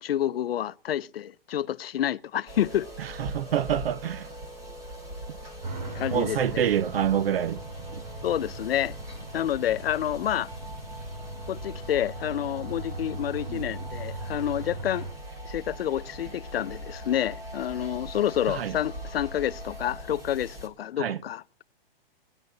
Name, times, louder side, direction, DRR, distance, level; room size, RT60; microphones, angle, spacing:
voice 1, 0.0-2.9 5.9-6.6 8.2-9.0 9.3-10.5 11.5-15.1 15.5-21.6, left 11 dB, 75° left, 0.7 m, -29 dB
sound 1, 2.5-20.7, equal, 10° right, 1.7 m, -41 dB
voice 2, 3.0-4.3 6.1-7.6 7.9-8.0 13.5-13.6 18.5-18.7 21.0-21.2, right 9 dB, 75° right, 0.8 m, -27 dB
sound 2, 5.6-15.1, right 3 dB, 45° right, 6.1 m, -39 dB
18.5 x 11.0 x 3.9 m
hypercardioid pair, 160°, 30 cm